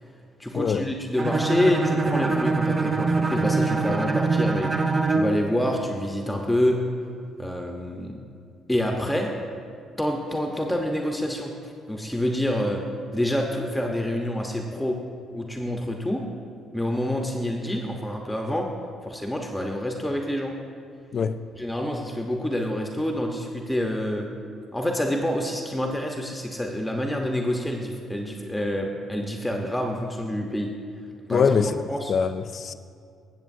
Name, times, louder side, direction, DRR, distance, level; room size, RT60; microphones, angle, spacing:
voice 1, 0.4-4.7 5.1-6.8 7.4-8.2 8.7-9.3 10.0-12.8 13.1-15.0 15.3-16.2 16.7-18.7 19.0-20.6 21.5-24.3 24.7-30.7 31.2-31.5 31.9-32.1, left 1 dB, 10° left, 1.0 m, -27 dB
Bowed string instrument, 1.2-5.4, right 3 dB, 35° right, 0.8 m, -23 dB
voice 2, 31.3-31.8 32.1-32.7, left 6 dB, 55° left, 0.4 m, -23 dB
17.0 x 7.4 x 2.7 m
hypercardioid pair, 50°, 0 cm